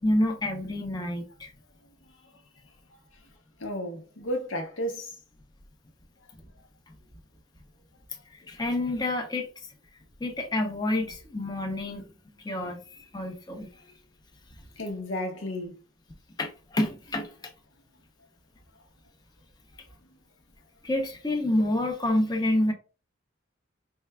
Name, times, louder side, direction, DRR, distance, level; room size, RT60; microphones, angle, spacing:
voice 1, 0.0-1.5 8.3-9.5 10.2-12.0 12.4-13.9 16.4-17.5 20.8-22.7, left 1 dB, 20° left, 0.6 m, -28 dB
voice 2, 2.0-2.4 3.6-5.2 14.8-15.8 18.7-18.8, equal, 85° left, 0.9 m, -33 dB
4.5 x 3.2 x 2.2 m
head